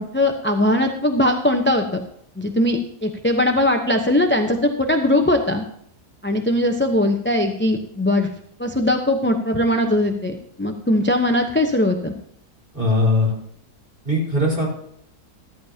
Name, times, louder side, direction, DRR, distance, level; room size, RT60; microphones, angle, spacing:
voice 1, 0.0-1.9 2.4-5.6 6.2-8.3 8.6-12.1, left 1 dB, 10° left, 4 dB, 0.5 m, -20 dB
voice 2, 12.7-13.3 14.0-14.7, left 2 dB, 35° right, -3 dB, 4.7 m, -19 dB
14.0 x 14.0 x 2.9 m, 0.69 s
omnidirectional pair, 1.6 m